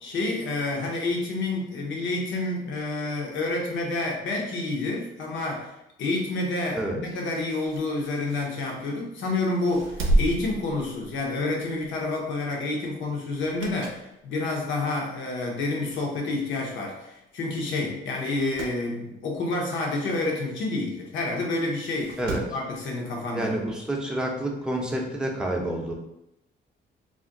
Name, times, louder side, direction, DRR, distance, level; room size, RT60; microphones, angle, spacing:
voice 1, 0.0-5.7 6.0-22.2 22.5-23.5, left 2 dB, 75° left, 0 dB, 0.8 m, -29 dB
sound 1, 7.1-9.1 9.5-11.4 11.8-12.0 13.3-14.1 14.6-14.7 15.6-15.7 15.9-16.0 16.2-16.3 17.1-17.3 17.6-17.7 18.1-18.8 20.7-20.8 21.8-22.6 23.9-24.0, right 1 dB, 80° right, 0.6 m, -31 dB
voice 2, 23.3-25.9, right 1 dB, 5° right, 0 dB, 0.6 m, -28 dB
2.4 x 2.1 x 3.7 m, 0.87 s
cardioid pair, 90°, 20 cm